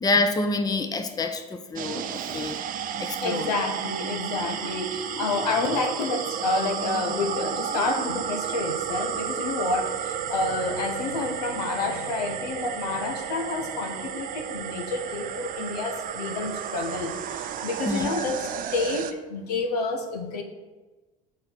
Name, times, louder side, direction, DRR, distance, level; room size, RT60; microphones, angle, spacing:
voice 1, 0.0-2.6 3.0-3.5 17.8-18.3, left 3 dB, 20° left, 7 dB, 0.7 m, -27 dB
sound 1, 1.8-19.1, right 9 dB, 45° right, 0.6 m, -32 dB
voice 2, 3.2-20.4, left 3 dB, 85° left, 4 dB, 1.0 m, -29 dB
6.5 x 4.3 x 6.2 m, 1.2 s
hypercardioid pair, 80°, 20 cm